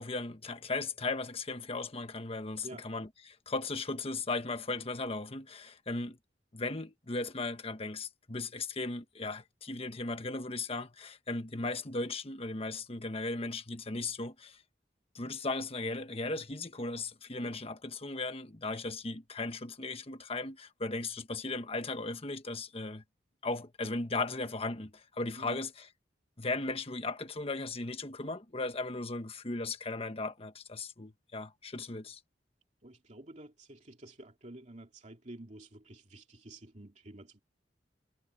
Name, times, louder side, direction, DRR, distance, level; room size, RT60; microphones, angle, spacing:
voice 1, 0.0-6.2 6.5-14.6 15.1-23.0 23.4-25.7 26.4-32.2, left 3 dB, 35° left, 1.4 m, -37 dB
voice 2, 32.8-37.4, right 1 dB, 45° right, 2.7 m, -49 dB
head